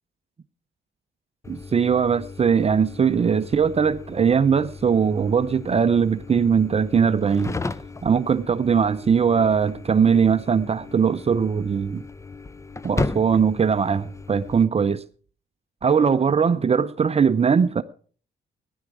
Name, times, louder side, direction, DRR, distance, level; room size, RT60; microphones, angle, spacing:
sound 1, 1.4-14.7, left 3 dB, 15° left, 0.5 m, -36 dB
voice 1, 1.5-7.6 8.0-12.0 12.8-15.0 15.8-17.8, right 6 dB, 30° right, 0.6 m, -20 dB
16.0 x 11.0 x 4.8 m
cardioid pair, 90°, 20 cm